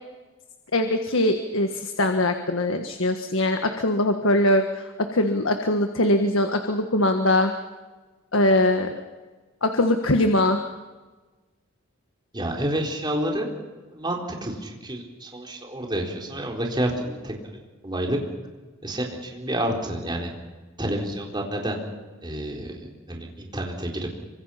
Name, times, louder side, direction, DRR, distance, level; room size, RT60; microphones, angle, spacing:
voice 1, 0.7-7.5 8.3-8.9 9.6-10.7, left 1 dB, 80° left, 6 dB, 1.6 m, -22 dB
voice 2, 12.3-13.5 13.9-17.4 17.8-18.2 18.8-20.3 20.8-21.8 22.2-22.7 23.1-24.1, right 1 dB, 20° right, 0 dB, 4.3 m, -29 dB
26.5 x 25.0 x 5.8 m, 1.3 s
head